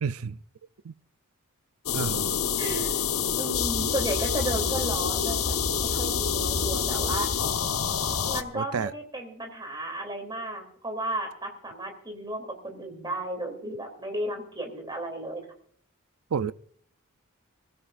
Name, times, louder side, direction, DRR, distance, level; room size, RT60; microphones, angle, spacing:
voice 1, 0.0-0.4 0.8-0.9 1.9-2.4 8.5-8.9 16.3-16.5, right 6 dB, 80° right, 0.5 m, -30 dB
sound 1, 1.9-8.4, left 6 dB, 80° left, 1.1 m, -27 dB
voice 2, 2.6-3.0 3.4-7.3 8.3-15.4, right 1 dB, 20° right, 3.2 m, -34 dB
23.0 x 14.5 x 2.6 m
head